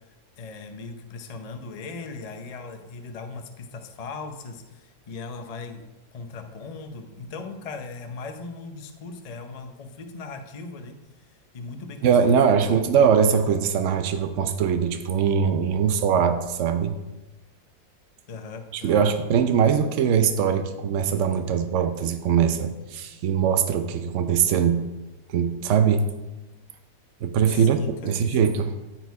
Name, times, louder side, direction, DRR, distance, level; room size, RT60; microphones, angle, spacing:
voice 1, 0.4-5.8 6.1-11.0 11.3-13.0 18.3-19.1 27.5-28.4, left 4 dB, 75° left, 6 dB, 0.3 m, -38 dB
voice 2, 12.0-17.0 18.7-24.9 25.3-26.1 27.2-28.7, right 7 dB, 80° right, 8 dB, 0.6 m, -21 dB
13.5 x 4.6 x 4.7 m, 1.1 s
omnidirectional pair, 2.0 m